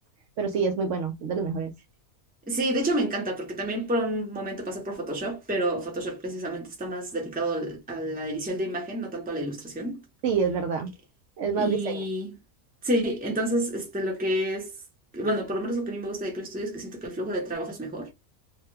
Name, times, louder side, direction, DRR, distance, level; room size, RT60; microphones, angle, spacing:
voice 1, 0.4-1.7 10.2-10.9 11.4-12.0, right 5 dB, 70° right, 0.8 m, -27 dB
voice 2, 2.5-10.0 11.5-12.3 12.8-14.7 15.1-18.1, right 1 dB, 10° right, 0.7 m, -29 dB
2.8 x 2.2 x 3.2 m
omnidirectional pair, 1.5 m